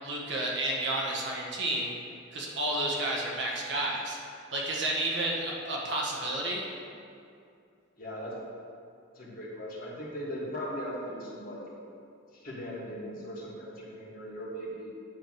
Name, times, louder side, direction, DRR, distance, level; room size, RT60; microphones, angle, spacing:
voice 1, 0.0-1.9 2.3-4.2 4.5-6.6, right 1 dB, 55° right, -3 dB, 1.2 m, -31 dB
voice 2, 8.0-8.3 9.1-11.6 12.4-14.9, equal, 45° left, -6 dB, 1.6 m, -38 dB
9.3 x 3.3 x 6.2 m, 2.5 s
head